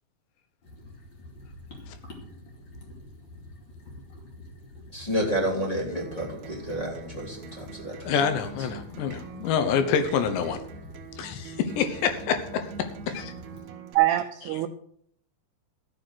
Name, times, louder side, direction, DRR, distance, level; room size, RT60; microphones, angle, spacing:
sound 1, 0.6-13.6, left 1 dB, 30° left, 2.8 m, -46 dB
voice 1, 4.9-8.1 8.6-8.7, equal, 10° left, -1 dB, 2.2 m, -30 dB
Acoustic guitar, 6.0-13.9, right 6 dB, 70° right, 2.9 m, -44 dB
voice 2, 8.0-10.6 11.2-13.3 14.4-14.6, left 7 dB, 75° left, 8 dB, 3.1 m, -27 dB
voice 3, 13.9-14.7, right 15 dB, 85° right, 9 dB, 2.3 m, -23 dB
14.0 x 7.6 x 6.2 m, 0.65 s
omnidirectional pair, 5.3 m